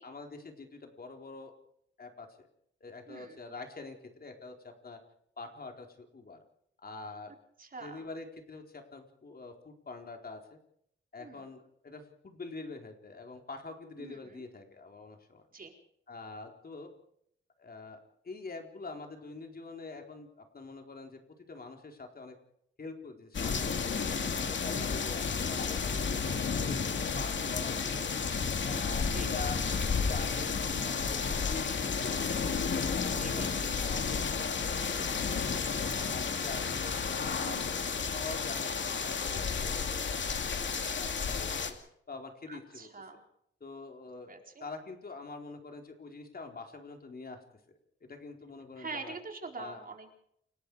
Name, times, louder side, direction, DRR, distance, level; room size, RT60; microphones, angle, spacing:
voice 1, 0.0-1.5 2.0-2.5 2.8-5.0 5.4-6.4 6.8-7.3 7.8-10.6 11.1-15.4 16.1-16.9 17.6-21.2 21.5-22.3 22.8-23.7 24.2-26.2 26.5-28.0 28.6-29.6 30.1-32.5 32.9-34.4 34.6-35.6 35.9-36.8 37.2-37.6 38.0-41.8 42.1-42.9 43.6-44.3 44.6-47.4 48.0-49.1 49.6-49.8, left 3 dB, 50° left, 3 dB, 4.4 m, -45 dB
voice 2, 3.1-3.4 7.6-8.1 11.2-11.4 14.0-14.4 15.5-15.7 24.2-24.5 29.0-29.4 33.1-33.5 37.4-37.9 42.5-43.2 44.3-44.6 48.8-50.2, right 4 dB, 45° right, 3 dB, 4.3 m, -45 dB
sound 1, 23.3-41.7, left 5 dB, 65° left, 2.6 m, -32 dB
29.0 x 19.0 x 5.0 m, 0.72 s
wide cardioid pair, 100°, 21 cm